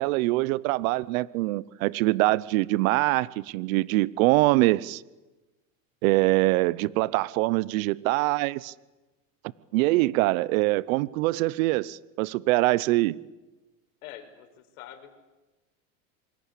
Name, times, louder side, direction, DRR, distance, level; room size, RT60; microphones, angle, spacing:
voice 1, 0.0-5.0 6.0-8.7 9.7-13.2, right 20 dB, 70° right, 1.0 m, -24 dB
voice 2, 14.0-15.2, left 11 dB, 75° left, 5.6 m, -45 dB
27.5 x 24.5 x 8.4 m
supercardioid pair, 125°, 42 cm